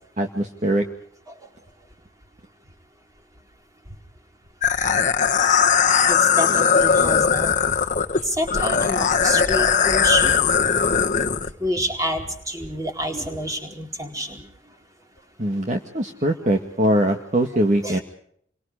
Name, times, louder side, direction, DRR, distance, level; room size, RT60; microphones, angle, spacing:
voice 1, 0.2-0.9 15.4-18.0, right 1 dB, 40° right, 3 dB, 1.9 m, -22 dB
sound 1, 4.6-11.5, left 6 dB, 40° left, 1.3 m, -19 dB
voice 2, 6.1-7.5 8.3-10.3 11.6-14.4 17.8-18.0, equal, 15° right, 3 dB, 4.3 m, -27 dB
29.5 x 24.0 x 5.0 m, 0.66 s
head